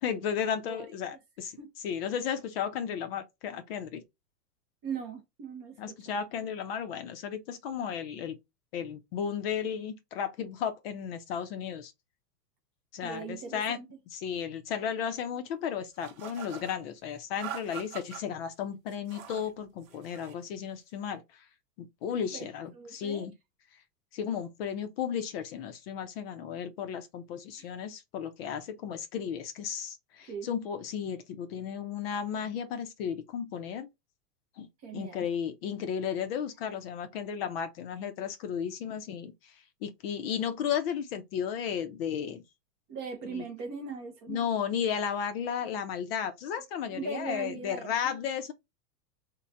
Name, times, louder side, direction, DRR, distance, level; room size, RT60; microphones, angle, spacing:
voice 1, 0.0-4.0 5.8-8.4 8.7-11.9 12.9-13.8 14.1-21.4 21.8-23.3 24.1-33.9 34.6-34.7 34.9-39.5 39.8-42.4 43.3-43.4 44.3-48.5, left 8 dB, 40° left, 0.4 m, -34 dB
voice 2, 0.6-1.2 1.6-1.7 4.8-5.9 13.0-13.9 22.3-22.5 22.7-23.3 27.6-27.7 30.2-30.5 34.8-35.3 42.9-44.4 46.9-48.2, right 5 dB, 25° right, 0.4 m, -40 dB
sound 1, 16.0-16.8 17.4-18.2 18.9-19.5 19.8-20.4, right 8 dB, 60° right, 0.8 m, -43 dB
3.0 x 2.1 x 2.4 m
hypercardioid pair, 110°, 48 cm